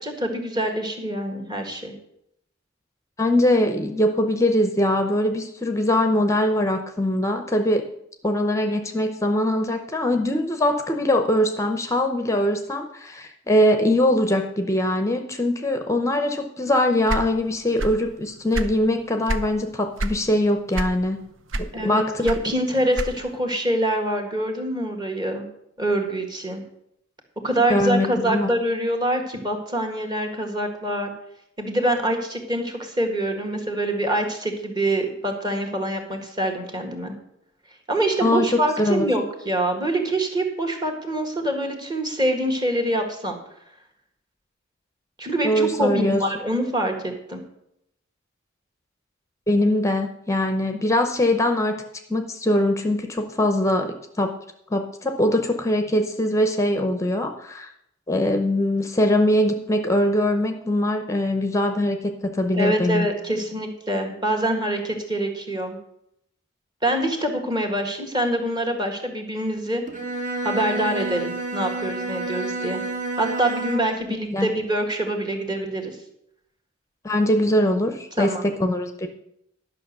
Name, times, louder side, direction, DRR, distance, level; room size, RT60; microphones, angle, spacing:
voice 1, 0.0-1.9 21.7-25.5 25.8-26.6 27.4-31.1 31.6-37.1 37.9-43.3 45.2-47.4 62.5-65.8 66.8-69.8 70.4-72.8 73.2-76.0 78.2-78.4, right 1 dB, 20° right, 4 dB, 1.8 m, -25 dB
voice 2, 3.2-7.8 8.2-21.2 21.5-22.3 27.7-28.5 38.2-39.1 45.4-46.2 49.5-51.8 52.1-54.3 54.7-57.7 58.1-63.1 74.1-74.5 77.0-78.3 78.6-79.1, left 1 dB, 15° left, 6 dB, 0.7 m, -22 dB
sound 1, 17.1-18.1 18.4-19.5 20.0-20.2 20.7-21.2 21.5-23.4, right 1 dB, 90° right, 0.8 m, -27 dB
Bowed string instrument, 69.9-74.1, right 2 dB, 40° right, 1.5 m, -29 dB
11.5 x 6.1 x 6.6 m, 0.77 s
head